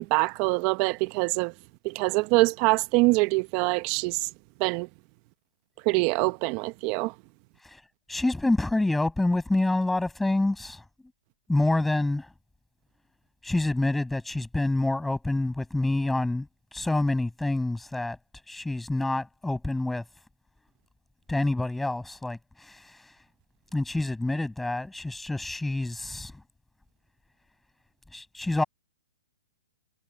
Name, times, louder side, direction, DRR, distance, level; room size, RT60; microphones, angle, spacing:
voice 1, 0.0-1.5 1.8-4.2 4.6-4.9 5.9-7.1, right 25 dB, 35° right, 1.0 m, -24 dB
voice 2, 8.1-10.8 11.5-12.3 13.4-18.2 18.5-20.0 21.3-22.9 23.7-26.3 28.1-28.6, left 2 dB, 5° left, 5.8 m, -27 dB
hypercardioid pair, 140°, 3 cm